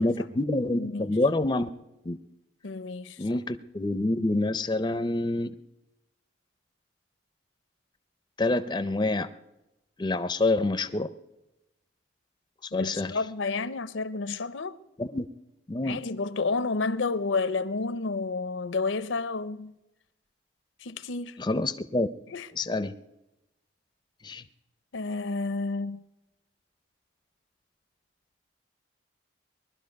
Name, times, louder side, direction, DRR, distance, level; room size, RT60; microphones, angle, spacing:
voice 1, 0.0-1.7 2.1-2.2 3.2-5.5 8.4-9.3 10.0-11.1 12.7-13.2 15.0-15.3 15.7-16.0 21.4-22.1 22.5-22.9 24.2-24.4, left 2 dB, 20° left, 0.4 m, -27 dB
voice 2, 0.7-1.1 2.6-3.2 12.7-14.8 15.8-19.8 20.8-21.4 22.3-22.5 24.9-26.0, left 3 dB, 80° left, 0.6 m, -30 dB
20.0 x 12.0 x 5.2 m
head